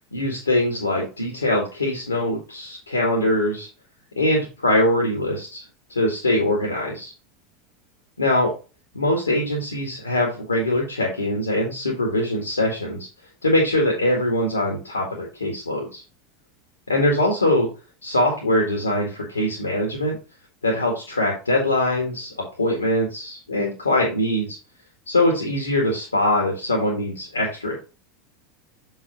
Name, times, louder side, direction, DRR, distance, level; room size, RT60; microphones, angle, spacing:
voice 1, 0.1-3.7 4.2-5.6 5.9-7.1 8.2-8.5 8.9-13.1 13.4-16.0 16.9-17.7 18.0-20.2 20.6-24.6 25.1-27.8, left 1 dB, 85° left, -1 dB, 1.9 m, -22 dB
6.9 x 5.7 x 3.0 m, 0.32 s
figure-of-eight pair, 80°, 0 cm